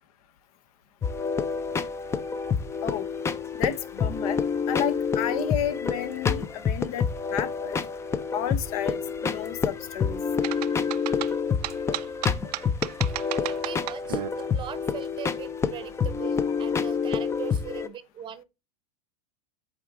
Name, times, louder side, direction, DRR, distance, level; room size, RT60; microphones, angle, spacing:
sound 1, 1.0-17.9, left 6 dB, 15° left, 0.4 m, -28 dB
voice 1, 3.6-4.4 4.7-7.8 8.3-10.2, left 9 dB, 65° left, 0.8 m, -31 dB
sound 2, 10.4-14.3, right 15 dB, 80° right, 0.4 m, -33 dB
voice 2, 13.4-18.4, right 10 dB, 25° right, 0.7 m, -40 dB
7.9 x 3.7 x 3.5 m
supercardioid pair, 125°, 20 cm